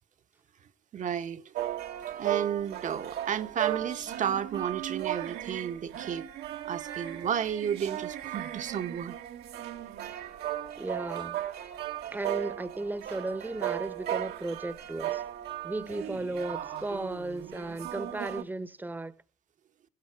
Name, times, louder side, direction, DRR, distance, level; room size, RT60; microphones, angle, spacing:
voice 1, 0.9-1.5 2.2-6.3 6.6-9.1, right 8 dB, 45° right, 1.2 m, -32 dB
sound 1, 1.5-18.4, right 12 dB, 75° right, 1.6 m, -36 dB
voice 2, 10.8-11.4 12.1-15.2 15.6-19.1, right 2 dB, 10° right, 1.0 m, -35 dB
16.5 x 13.0 x 4.7 m
cardioid pair, 110°, 17 cm